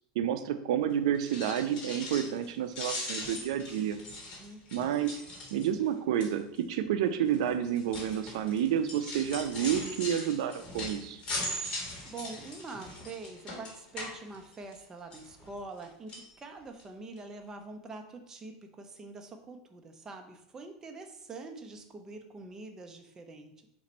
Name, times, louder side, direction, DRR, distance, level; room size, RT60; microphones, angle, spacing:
voice 1, 0.2-4.0 4.7-5.2 5.5-11.2, right 9 dB, 80° right, 10 dB, 0.3 m, -30 dB
sound 1, 1.1-2.5 2.7-5.9 6.2-6.6 7.3-14.8 15.1-15.8 16.1-16.3 16.8-16.9 17.2-17.3, left 1 dB, 30° left, 1.4 m, -40 dB
voice 2, 4.3-4.6 12.0-23.7, right 3 dB, 15° right, 5 dB, 0.4 m, -45 dB
4.2 x 2.5 x 4.1 m, 0.77 s
supercardioid pair, 145°, 3 cm